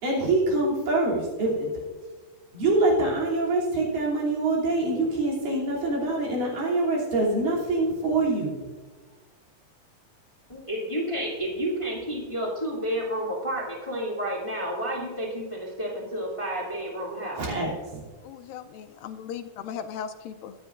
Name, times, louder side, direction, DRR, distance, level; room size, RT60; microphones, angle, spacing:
voice 1, 0.0-1.7 2.5-8.6 17.4-18.0, right 2 dB, 70° right, -5 dB, 4.6 m, -25 dB
voice 2, 10.5-17.4, equal, 10° left, -3 dB, 1.8 m, -30 dB
voice 3, 18.2-20.5, left 8 dB, 85° left, 9 dB, 2.2 m, -37 dB
23.0 x 9.6 x 2.5 m, 1.4 s
omnidirectional pair, 4.2 m